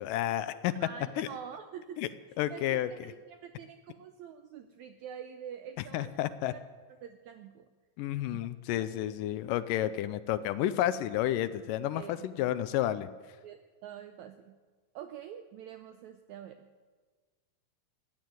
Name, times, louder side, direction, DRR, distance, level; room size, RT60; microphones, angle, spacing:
voice 1, 0.0-0.7 1.2-1.3 2.0-2.1 2.4-2.9 5.9-6.5 8.0-13.1, left 12 dB, 80° left, 13 dB, 2.1 m, -31 dB
voice 2, 0.8-2.0 2.5-6.2 7.0-7.7 8.3-8.4 8.8-8.9 11.9-12.1 12.4-12.5 13.4-14.6 14.9-16.7, right 8 dB, 85° right, 8 dB, 1.6 m, -46 dB
16.0 x 9.5 x 9.2 m, 1.4 s
omnidirectional pair, 4.1 m